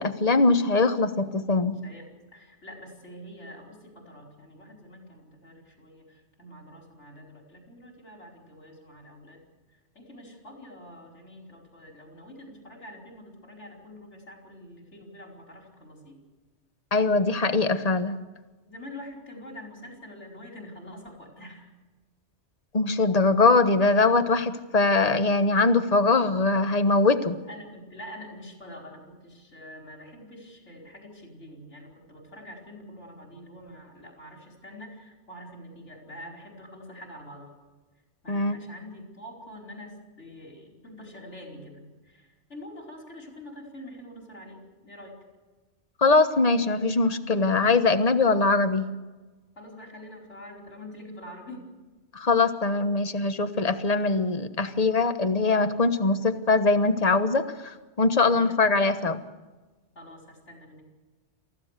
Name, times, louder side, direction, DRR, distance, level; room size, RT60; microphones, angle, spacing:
voice 1, 0.0-1.8 16.9-18.2 22.7-27.4 38.3-38.6 46.0-48.9 52.1-59.2, left 3 dB, 35° left, 9 dB, 1.3 m, -22 dB
voice 2, 1.7-9.4 9.7-16.2 18.7-21.7 27.5-37.5 38.2-45.2 49.6-51.7 58.2-58.7 60.0-60.8, left 1 dB, 85° left, 0 dB, 5.1 m, -45 dB
27.5 x 15.5 x 6.6 m, 1.2 s
omnidirectional pair, 1.2 m